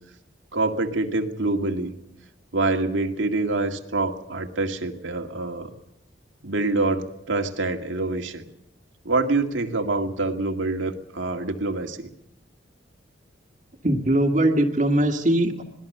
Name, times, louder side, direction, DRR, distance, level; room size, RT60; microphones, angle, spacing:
voice 1, 0.5-1.9 2.5-5.7 6.4-8.4 9.0-12.1, right 2 dB, 85° right, 3 dB, 2.2 m, -26 dB
voice 2, 13.8-15.6, right 1 dB, 40° right, 2 dB, 2.0 m, -21 dB
26.5 x 19.5 x 6.7 m, 0.80 s
head